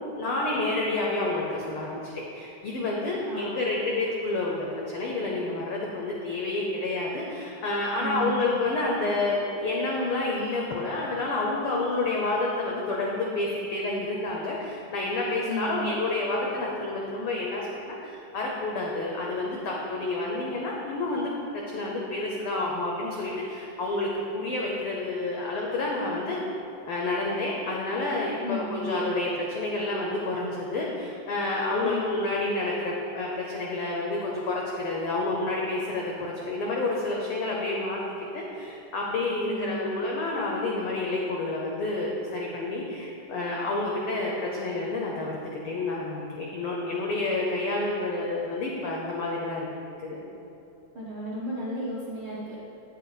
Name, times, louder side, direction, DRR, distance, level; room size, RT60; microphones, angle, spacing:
voice 1, 0.0-26.4 26.9-38.0 38.3-49.7 50.0-50.2, left 2 dB, 80° left, -2 dB, 1.2 m, -29 dB
voice 2, 3.3-3.9 8.0-8.6 15.5-15.9 28.4-29.0 31.8-32.2 39.5-40.1 50.9-52.6, equal, 70° right, -7 dB, 1.0 m, -34 dB
9.0 x 6.4 x 4.1 m, 2.8 s
omnidirectional pair, 3.5 m